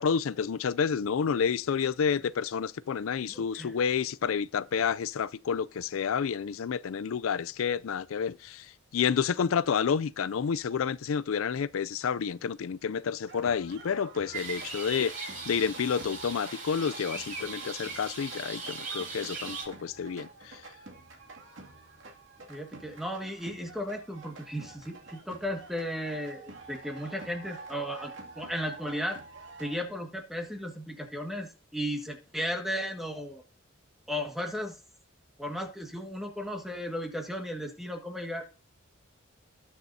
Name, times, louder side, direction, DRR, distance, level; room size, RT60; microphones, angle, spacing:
voice 1, 0.0-8.7 8.9-20.6, left 6 dB, 85° left, 0.4 m, -29 dB
voice 2, 3.3-3.7 22.5-29.2 29.6-33.4 34.1-34.7 35.4-38.4, equal, ahead, 1.7 m, -35 dB
sound 1, 13.3-29.8, right 3 dB, 65° right, 2.4 m, -48 dB
sound 2, 14.3-19.7, right 4 dB, 40° right, 6.5 m, -39 dB
19.0 x 6.7 x 2.7 m
head